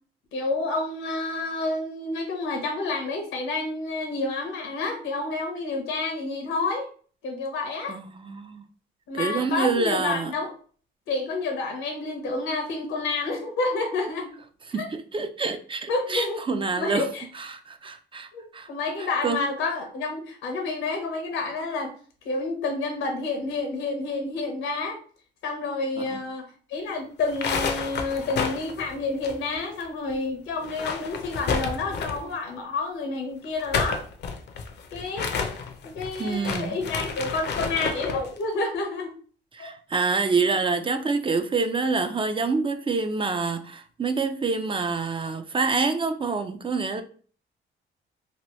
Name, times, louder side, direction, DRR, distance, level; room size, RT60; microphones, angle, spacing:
voice 1, 0.3-6.9 7.2-8.0 9.1-10.5 11.1-14.3 14.8-14.9 15.4-15.5 15.9-16.4 16.8-17.2 18.3-21.9 22.2-25.0 25.4-26.4 26.7-34.0 34.9-35.3 35.8-39.1 39.6-39.7 40.4-40.5, left 3 dB, 90° left, 1.0 m, -29 dB
voice 2, 7.9-8.6 9.1-10.3 14.7-17.1 17.3-18.7 19.0-19.4 26.1-26.2 36.2-36.8 39.5-47.0, right 4 dB, 25° right, 0.4 m, -27 dB
sound 1, 27.2-29.8 30.1-30.2 30.6-32.3 33.4-38.3, left 5 dB, 60° left, 0.6 m, -30 dB
3.0 x 2.6 x 2.9 m
cardioid pair, 90°, 20 cm